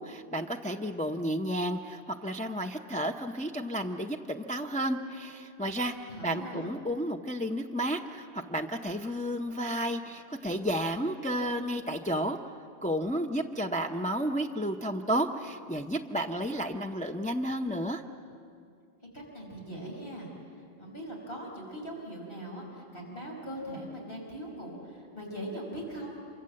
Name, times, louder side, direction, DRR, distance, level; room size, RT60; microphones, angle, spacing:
voice 1, 0.0-12.5 12.8-18.0, equal, 10° left, 2 dB, 0.7 m, -32 dB
voice 2, 6.1-6.7 19.1-20.3 20.8-26.2, right 1 dB, 60° left, -1 dB, 5.4 m, -40 dB
27.0 x 25.0 x 7.7 m, 2.3 s
omnidirectional pair, 1.1 m